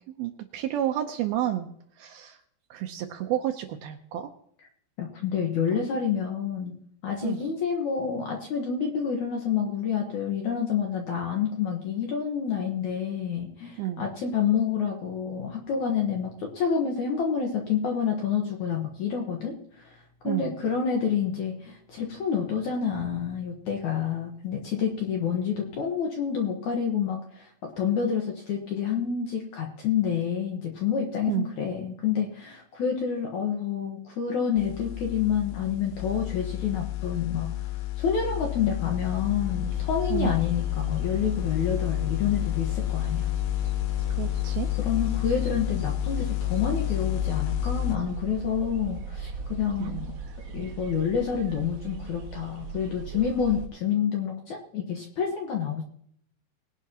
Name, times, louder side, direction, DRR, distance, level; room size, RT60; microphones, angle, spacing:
voice 1, 0.2-1.7 2.0-2.4 2.7-4.3 7.2-7.4 13.8-14.0 20.2-20.5 31.3-31.5 40.1-40.3 44.2-44.7 49.8-50.2, right 12 dB, 80° right, 6 dB, 2.3 m, -30 dB
voice 2, 5.0-6.8 7.0-43.3 44.8-50.1 50.5-55.8, left 7 dB, 65° left, 1 dB, 2.0 m, -28 dB
sound 1, 34.6-48.0, left 16 dB, 85° left, 2.8 m, -30 dB
sound 2, 39.4-53.7, right 4 dB, 60° right, 1.9 m, -39 dB
20.5 x 10.5 x 2.9 m, 0.68 s
omnidirectional pair, 4.9 m